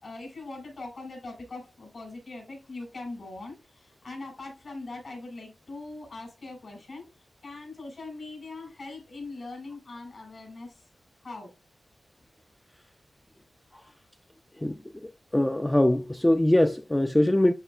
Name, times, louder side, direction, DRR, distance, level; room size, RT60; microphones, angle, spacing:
voice 1, 0.0-7.1 7.4-10.8 11.2-11.5, left 3 dB, 55° left, 4.3 m, -41 dB
voice 2, 15.3-17.5, left 1 dB, 15° left, 0.4 m, -22 dB
11.0 x 3.9 x 2.3 m
wide cardioid pair, 95°, 0 cm